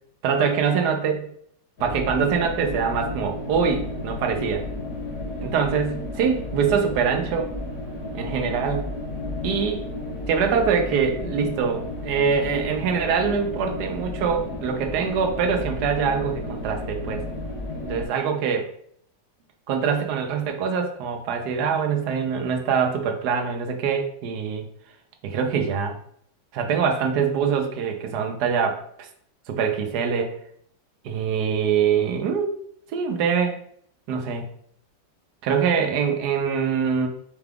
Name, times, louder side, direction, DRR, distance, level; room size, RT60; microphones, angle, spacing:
voice 1, 0.2-1.3 1.8-4.6 5.4-7.5 8.1-8.9 9.4-9.8 10.3-17.2 17.8-18.7 19.7-24.7 25.2-26.0 26.5-29.1 29.5-30.4 31.0-32.5 32.9-33.6 34.1-34.4 35.4-37.1, right 6 dB, 70° right, 4 dB, 1.0 m, -24 dB
sound 1, 1.8-18.1, left 1 dB, 55° left, 1.3 m, -33 dB
4.7 x 2.3 x 3.4 m, 0.64 s
omnidirectional pair, 2.1 m